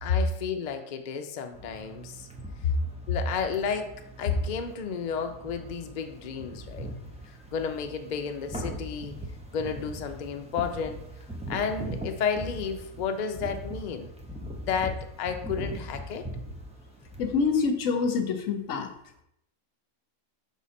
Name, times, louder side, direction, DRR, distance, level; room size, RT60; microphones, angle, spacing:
voice 1, 0.0-2.3 3.1-6.9 7.3-9.2 9.5-11.0 11.5-14.1 14.6-16.3, left 6 dB, 50° left, 6 dB, 0.5 m, -32 dB
sound 1, 1.5-17.7, right 1 dB, 5° right, 0.5 m, -41 dB
voice 2, 17.2-18.9, left 5 dB, 70° left, 6 dB, 1.0 m, -26 dB
6.1 x 3.7 x 4.2 m, 0.77 s
omnidirectional pair, 1.5 m